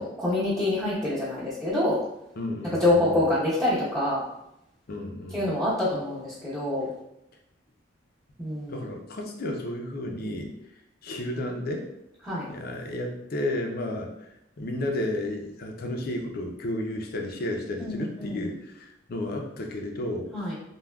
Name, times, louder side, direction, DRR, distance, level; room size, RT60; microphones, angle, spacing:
voice 1, 0.0-2.0 2.8-4.2 5.3-6.9 8.4-8.8 12.2-12.5 17.8-18.5 20.3-20.5, left 1 dB, 15° right, -13 dB, 0.9 m, -26 dB
voice 2, 2.4-3.2 4.9-5.5 8.7-10.5 11.0-11.9 12.5-14.1 14.6-20.3, left 1 dB, 55° left, 2 dB, 0.5 m, -32 dB
3.4 x 2.2 x 2.2 m, 0.84 s
head